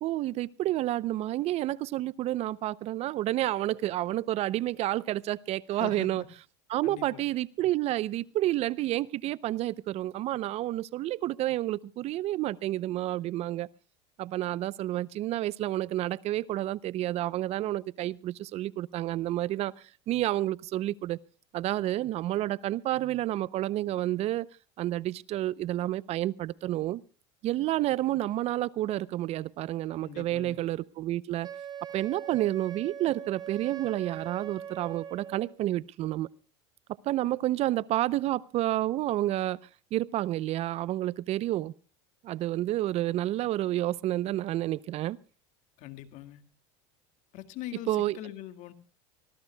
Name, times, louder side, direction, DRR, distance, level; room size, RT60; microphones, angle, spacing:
voice 1, 0.0-6.2 6.7-13.7 14.2-21.2 21.5-24.5 24.8-27.0 27.4-31.5 31.9-36.3 37.0-39.6 39.9-41.7 42.2-45.2 47.9-48.2, right 15 dB, 45° right, 0.6 m, -30 dB
voice 2, 5.7-6.3 6.8-7.3 30.0-30.6 45.8-46.4 47.3-48.7, left 12 dB, 55° left, 1.9 m, -42 dB
Wind instrument woodwind instrument, 31.4-35.6, right 8 dB, 25° right, 2.2 m, -41 dB
25.0 x 16.0 x 2.3 m
supercardioid pair, 125°, 15 cm